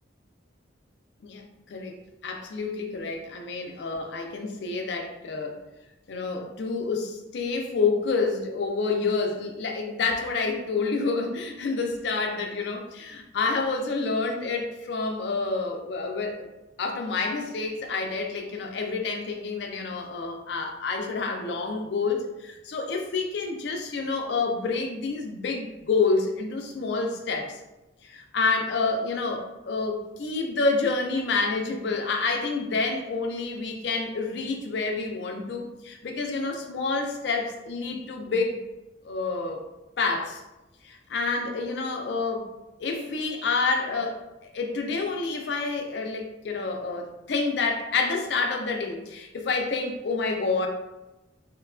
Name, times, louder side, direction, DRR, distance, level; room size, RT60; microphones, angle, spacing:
voice 1, 2.2-5.6 6.1-16.5 16.8-27.6 28.0-38.6 39.0-39.6 40.0-40.4 40.8-42.5 42.8-44.2 44.5-50.7, left 4 dB, 60° left, 3 dB, 0.4 m, -28 dB
3.0 x 2.2 x 2.4 m, 1.0 s
head